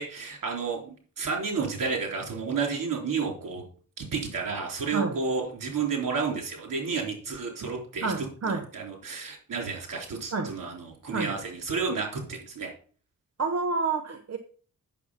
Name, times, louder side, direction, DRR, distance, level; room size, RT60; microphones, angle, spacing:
voice 1, 0.0-3.6 4.0-8.1 8.5-12.7, right 5 dB, 70° right, 1 dB, 3.9 m, -31 dB
voice 2, 8.0-8.7 10.3-10.5 11.1-11.3 13.4-14.4, right 4 dB, 50° right, 6 dB, 1.0 m, -28 dB
8.5 x 7.2 x 5.6 m, 0.41 s
cardioid pair, 90°, 33 cm